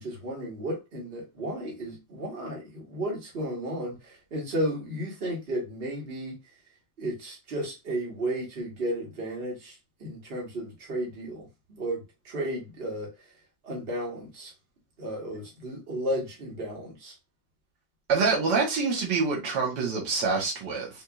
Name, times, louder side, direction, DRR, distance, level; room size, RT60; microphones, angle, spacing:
voice 1, 0.0-6.4 7.0-9.7 10.0-13.1 13.6-14.5 15.0-17.1, right 1 dB, 35° right, 1.4 m, -33 dB
voice 2, 18.1-20.9, right 4 dB, 70° right, 1.7 m, -26 dB
4.3 x 2.6 x 2.3 m
omnidirectional pair, 2.0 m